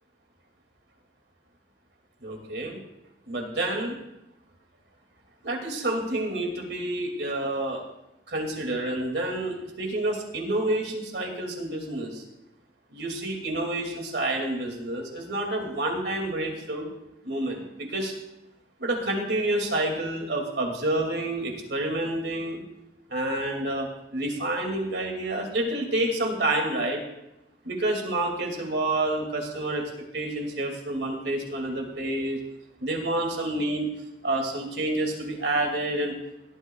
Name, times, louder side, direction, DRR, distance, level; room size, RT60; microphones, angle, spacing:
voice 1, 2.2-2.8 3.3-3.9 5.4-7.8 8.3-12.2 12.9-16.9 17.2-18.1 18.8-22.6 23.1-27.0 27.6-29.8 30.1-32.4 32.8-33.9 34.2-36.1, right 1 dB, 70° right, 2 dB, 2.4 m, -28 dB
17.0 x 12.0 x 2.4 m, 0.89 s
head